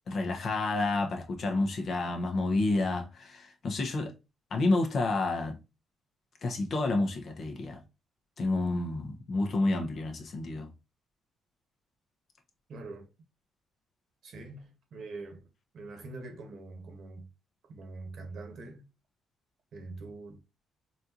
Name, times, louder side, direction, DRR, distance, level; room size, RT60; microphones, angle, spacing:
voice 1, 0.1-4.1 4.5-5.6 6.4-7.8 8.4-10.7, left 2 dB, 55° left, 0.9 m, -29 dB
voice 2, 12.7-13.1 14.2-15.4 15.7-17.3 17.7-18.9 19.7-20.4, right 3 dB, 65° right, 1.1 m, -44 dB
4.2 x 2.5 x 2.8 m
cardioid pair, 90°, 0 cm